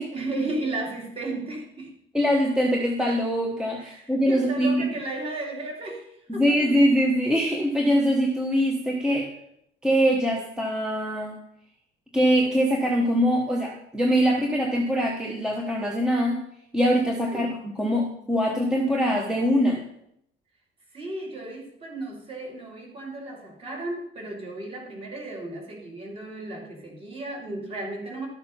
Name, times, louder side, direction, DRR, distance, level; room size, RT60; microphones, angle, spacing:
voice 1, 0.1-1.9 3.8-6.6 17.3-17.5 20.9-28.3, right 2 dB, 30° right, 0 dB, 2.8 m, -34 dB
voice 2, 2.1-4.8 6.3-9.3 9.8-11.4 12.1-16.4 16.7-19.8, equal, 5° right, -1 dB, 1.1 m, -23 dB
12.0 x 6.7 x 5.6 m, 0.74 s
cardioid pair, 175°, 20 cm